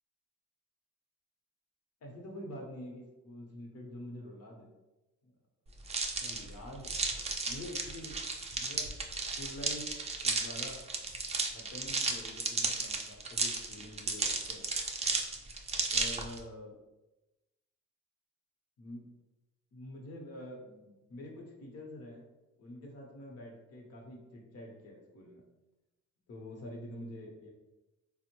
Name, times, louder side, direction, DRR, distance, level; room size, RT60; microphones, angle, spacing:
voice 1, 2.0-4.7 5.2-5.3 6.2-6.9 7.4-8.1 8.6-8.9 9.3-9.8 10.2-10.8 11.3-14.6 15.9-16.8 18.8-19.1 19.7-22.2 22.6-25.4 26.3-27.5, left 1 dB, 55° left, -1 dB, 0.9 m, -46 dB
sound 1, 5.9-16.4, right 3 dB, 20° right, 0.4 m, -34 dB
3.5 x 2.1 x 2.9 m, 1.0 s
cardioid pair, 90°, 30 cm